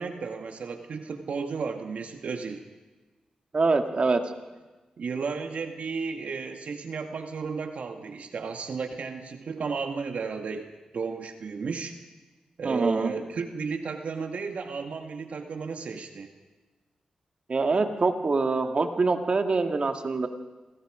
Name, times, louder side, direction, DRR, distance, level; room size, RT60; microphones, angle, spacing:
voice 1, 0.0-2.6 5.0-11.9 12.6-16.3, right 5 dB, 70° right, 6 dB, 1.9 m, -33 dB
voice 2, 3.5-4.2 12.6-13.1 17.5-20.3, right 3 dB, 45° right, 6 dB, 2.2 m, -24 dB
27.5 x 21.0 x 5.1 m, 1.2 s
cardioid pair, 70°, 2 cm